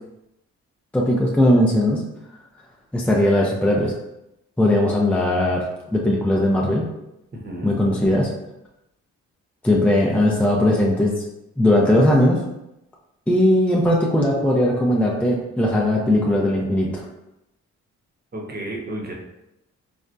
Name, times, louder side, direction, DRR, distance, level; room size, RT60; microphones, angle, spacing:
voice 1, 0.9-2.0 2.9-3.9 4.6-5.6 5.9-6.8 7.6-8.3 9.6-11.2 11.6-12.4 13.3-17.0, left 1 dB, 5° left, -2 dB, 0.5 m, -18 dB
voice 2, 7.3-7.8 18.3-19.1, right 1 dB, 30° right, -1 dB, 0.9 m, -32 dB
3.2 x 2.1 x 2.6 m, 0.88 s
supercardioid pair, 50°, 34 cm